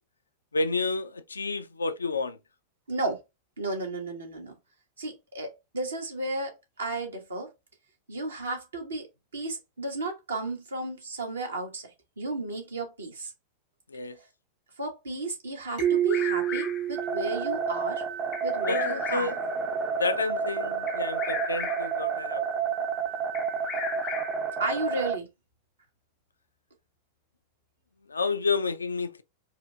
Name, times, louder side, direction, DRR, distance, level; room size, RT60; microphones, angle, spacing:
voice 1, 0.5-2.4 13.9-14.2 18.7-19.4 20.0-22.4 28.1-29.2, left 3 dB, 75° left, 0.4 m, -30 dB
voice 2, 2.9-3.2 3.6-4.5 5.0-7.5 8.1-9.1 9.3-13.3 14.2-14.3 14.8-18.0 18.4-19.4 24.6-25.3, right 2 dB, 75° right, 1.2 m, -33 dB
Bird vocalization bird call bird song, 15.8-17.0 18.3-19.5 20.9-22.0 23.3-24.5, left 7 dB, 30° left, 0.6 m, -36 dB
sound 1, 15.8-18.3, right 10 dB, 55° right, 1.6 m, -29 dB
sound 2, 16.9-25.2, right 5 dB, 35° right, 0.6 m, -30 dB
4.3 x 2.7 x 2.4 m
figure-of-eight pair, 90°, 0 cm